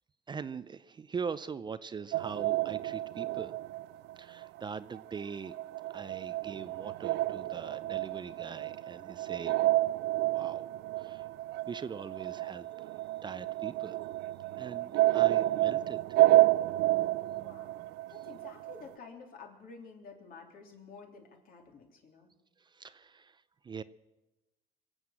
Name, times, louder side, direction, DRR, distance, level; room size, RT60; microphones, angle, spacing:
voice 1, 0.3-3.5 4.2-5.6 5.9-9.6 10.3-10.7 11.0-11.3 11.7-12.9 13.2-14.0 14.6-16.3 22.6-23.8, right 6 dB, 25° right, 14 dB, 0.4 m, -42 dB
sound 1, 2.1-4.7 4.9-18.8, right 16 dB, 80° right, 0.4 m, -30 dB
voice 2, 17.3-17.8 18.1-22.3, left 4 dB, 60° left, 2 dB, 3.2 m, -51 dB
24.0 x 8.0 x 7.5 m, 1.1 s
cardioid pair, 110°, 17 cm